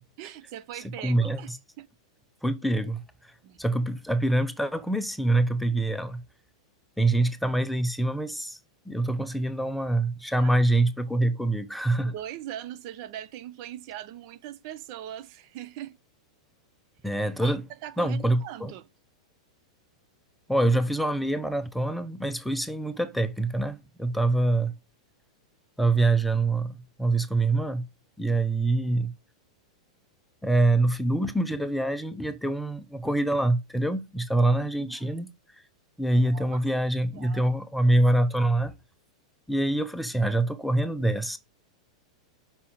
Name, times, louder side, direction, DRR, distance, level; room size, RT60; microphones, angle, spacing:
voice 1, 0.2-1.5 1.8-1.9 3.4-3.6 10.3-10.5 12.0-16.0 17.4-18.9 34.4-35.1 36.1-36.6 37.1-37.6, right 12 dB, 55° right, 0.9 m, -41 dB
voice 2, 1.0-1.4 2.4-3.0 3.6-6.2 7.0-8.6 8.9-12.1 17.0-17.6 18.0-18.7 20.5-24.7 25.8-27.8 28.2-29.1 30.4-35.3 36.0-38.7 39.5-41.4, right 2 dB, ahead, 0.9 m, -25 dB
5.8 x 5.6 x 6.5 m
hypercardioid pair, 105°, 3 cm